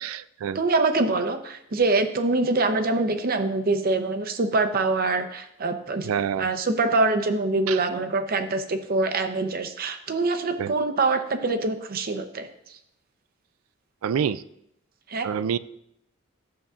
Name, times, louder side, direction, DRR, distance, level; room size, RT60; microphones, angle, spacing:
voice 1, 0.0-0.6 6.0-6.5 7.7-7.8 10.6-10.7 14.0-14.4 15.2-15.6, right 8 dB, 85° right, 16 dB, 0.3 m, -27 dB
voice 2, 0.5-6.1 6.4-12.5 15.1-15.3, right 3 dB, 45° right, 8 dB, 0.7 m, -24 dB
11.5 x 6.9 x 2.4 m, 0.77 s
head